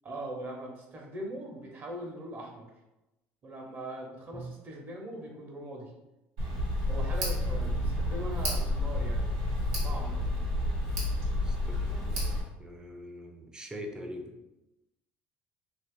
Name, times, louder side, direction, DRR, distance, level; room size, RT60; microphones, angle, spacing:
voice 1, 0.0-2.7 3.4-5.9 6.9-9.2 9.6-10.3, right 1 dB, 40° right, 0 dB, 1.0 m, -41 dB
Tick, 6.4-12.4, left 1 dB, 90° right, 1.3 m, -30 dB
voice 2, 11.4-12.3 12.6-14.4, equal, 15° right, 4 dB, 0.5 m, -43 dB
2.7 x 2.5 x 3.7 m, 0.96 s
supercardioid pair, 95°, 5 cm